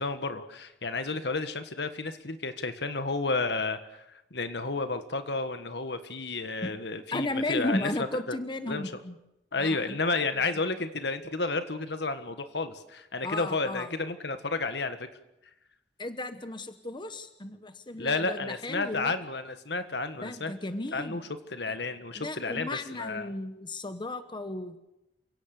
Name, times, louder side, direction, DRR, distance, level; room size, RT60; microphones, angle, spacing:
voice 1, 0.0-4.0 4.3-8.4 8.7-8.9 9.5-15.1 18.0-20.5 20.9-21.2 21.5-23.3, left 3 dB, 70° left, 10 dB, 1.7 m, -31 dB
voice 2, 7.1-9.2 9.6-10.0 13.2-13.9 16.0-19.1 20.2-21.3 22.1-24.8, left 2 dB, 25° left, 10 dB, 1.2 m, -34 dB
29.0 x 17.5 x 6.8 m, 0.90 s
head